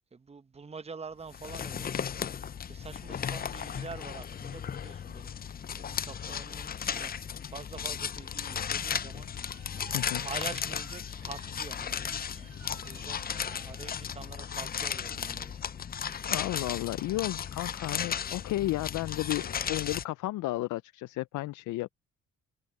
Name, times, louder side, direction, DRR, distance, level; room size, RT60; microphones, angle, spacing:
voice 1, 0.0-9.5 10.2-15.6, right 5 dB, 20° right, 0.9 m, -46 dB
sound 1, 1.3-20.0, left 8 dB, 30° left, 0.5 m, -35 dB
sound 2, 7.5-16.1, right 14 dB, 80° right, 3.3 m, -57 dB
voice 2, 16.3-21.9, left 17 dB, 80° left, 0.5 m, -33 dB
cardioid pair, 90°, 30 cm